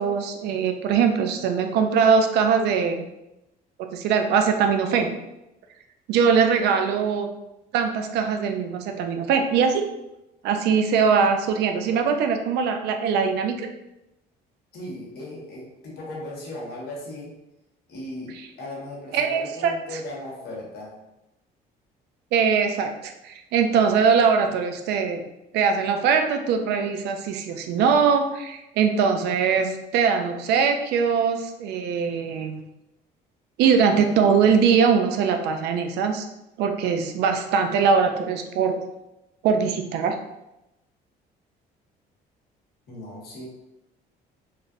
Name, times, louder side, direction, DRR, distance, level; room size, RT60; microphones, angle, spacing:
voice 1, 0.0-3.1 3.9-5.1 6.1-7.3 7.7-9.9 10.4-13.7 19.1-19.7 22.3-25.2 25.5-32.6 33.6-36.3 36.6-38.8 39.4-40.2, right 6 dB, 80° right, 5 dB, 0.4 m, -21 dB
voice 2, 14.7-17.3 17.9-21.0 24.4-24.5 42.9-43.5, left 1 dB, 70° left, -3 dB, 1.1 m, -37 dB
3.2 x 2.4 x 2.5 m, 0.90 s
cardioid pair, 110°, 17 cm